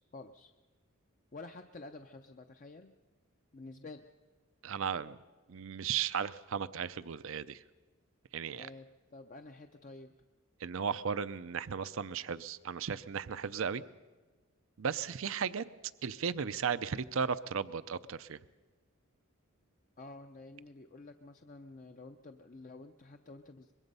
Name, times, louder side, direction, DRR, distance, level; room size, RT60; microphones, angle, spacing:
voice 1, 0.1-0.5 1.3-2.9 3.5-4.1 8.5-10.2 20.0-23.7, left 2 dB, 40° left, 6 dB, 0.6 m, -50 dB
voice 2, 4.6-5.2 5.5-7.6 8.3-8.7 10.6-13.8 14.8-15.6 16.0-18.4, right 6 dB, 65° right, 15 dB, 0.5 m, -35 dB
24.0 x 22.0 x 5.4 m, 1.3 s
head